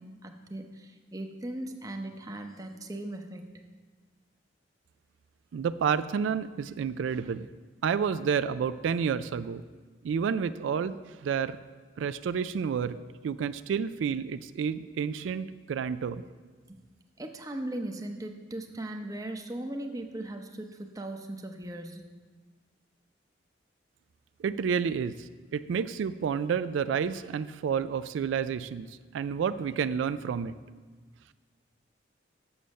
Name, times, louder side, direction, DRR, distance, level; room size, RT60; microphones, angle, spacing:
voice 1, 0.0-3.5 16.7-16.8 17.2-22.0, right 1 dB, 20° right, 4 dB, 0.7 m, -38 dB
voice 2, 5.5-7.5 7.8-9.6 10.0-11.6 12.0-13.0 13.2-16.2 24.4-30.5, right 7 dB, 90° right, 13 dB, 0.3 m, -30 dB
7.2 x 6.9 x 6.3 m, 1.4 s
head